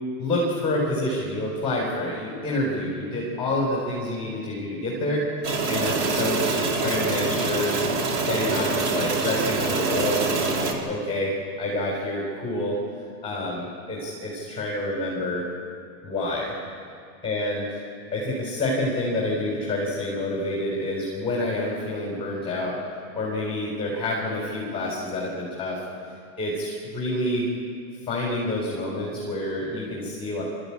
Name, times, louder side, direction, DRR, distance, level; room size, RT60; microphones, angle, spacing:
voice 1, 0.2-5.3 5.7-7.7 8.3-11.3 11.6-12.8 13.2-15.5 16.0-16.5 17.2-17.7 18.1-22.8 23.1-25.8 26.4-27.5 28.0-30.4, left 1 dB, 15° left, -4 dB, 3.9 m, -28 dB
sound 1, 5.4-10.7, right 3 dB, 40° right, 2.8 m, -25 dB
24.5 x 14.0 x 8.7 m, 2.3 s
supercardioid pair, 150°, 42 cm